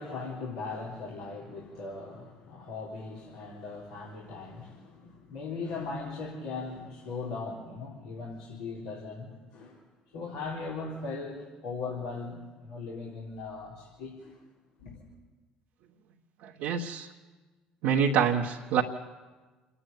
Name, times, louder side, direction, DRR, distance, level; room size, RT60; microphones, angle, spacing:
voice 1, 0.0-9.8 10.1-14.4 14.8-15.1, left 4 dB, 90° left, -6 dB, 4.0 m, -39 dB
voice 2, 16.4-17.1 17.8-18.8, right 7 dB, 80° right, -3 dB, 1.4 m, -26 dB
28.5 x 10.0 x 9.2 m, 1.3 s
supercardioid pair, 70°, 3 cm